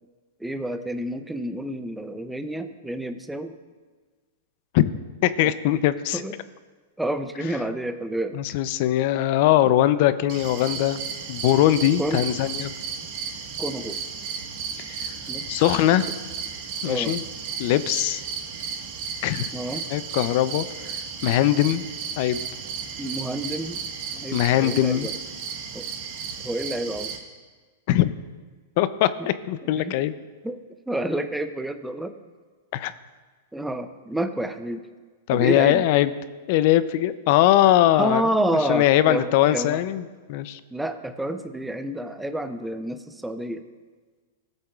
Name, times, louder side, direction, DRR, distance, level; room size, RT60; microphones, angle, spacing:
voice 1, 0.4-3.6 6.1-6.4 7.0-8.4 12.0-12.2 13.6-14.0 15.3-15.5 16.9-17.1 19.5-19.9 23.0-23.8 24.1-25.1 25.7-25.9 26.4-27.1 29.2-29.3 29.8-29.9 30.4-30.6 30.9-32.1 33.5-34.9 35.3-35.8 37.9-39.8 40.7-43.6, right 1 dB, 5° right, 8 dB, 0.5 m, -29 dB
voice 2, 5.2-6.2 8.3-12.7 15.0-15.1 15.5-16.1 16.8-17.2 17.6-18.2 19.2-19.5 19.9-20.7 21.2-21.8 22.2-22.4 24.3-25.1 27.9-28.1 28.8-30.1 32.7-32.9 35.3-36.2 36.5-38.3 38.7-40.6, left 13 dB, 50° left, 15 dB, 0.5 m, -21 dB
sound 1, 10.3-27.2, right 6 dB, 55° right, 1.4 m, -34 dB
16.0 x 7.9 x 2.4 m, 1.4 s
hypercardioid pair, 130°, 0 cm